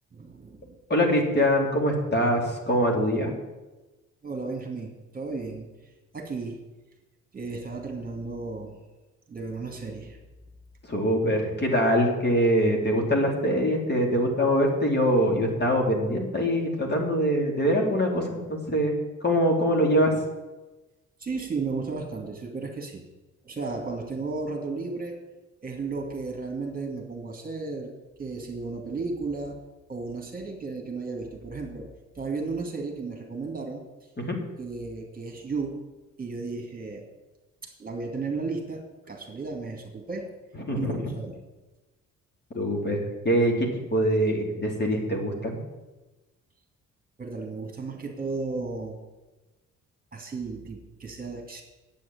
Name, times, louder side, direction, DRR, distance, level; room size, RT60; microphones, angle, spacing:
voice 1, 0.1-0.8 4.2-5.7 6.1-6.6 7.3-8.8 9.3-10.2 21.2-23.0 23.4-25.2 25.6-27.9 28.2-29.6 29.9-33.9 34.6-35.8 36.2-37.1 37.6-40.3 40.8-41.4 47.2-49.0 50.1-51.6, right 4 dB, 30° right, 2 dB, 2.5 m, -34 dB
voice 2, 0.9-3.3 10.9-18.9 19.2-20.1 34.2-34.4 40.7-41.1 42.5-43.0 43.2-45.6, equal, 35° left, 1 dB, 3.0 m, -23 dB
8.6 x 8.4 x 8.7 m, 1.1 s
cardioid pair, 90°, 30 cm